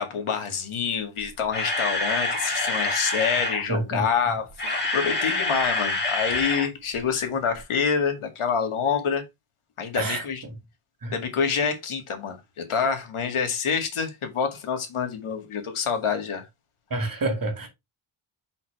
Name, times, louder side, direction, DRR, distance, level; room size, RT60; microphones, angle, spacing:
voice 1, 0.0-4.5 4.9-9.2 9.8-10.4 11.1-16.5, left 6 dB, 80° left, 2.2 m, -27 dB
Camera, 1.2-3.6 4.4-6.7 6.9-7.1 7.6-7.7, left 2 dB, 20° left, 2.7 m, -26 dB
voice 2, 3.7-4.0 10.0-10.2 11.0-11.1 16.9-17.7, right 2 dB, 40° right, 2.3 m, -27 dB
6.2 x 5.7 x 3.4 m
wide cardioid pair, 130°, 49 cm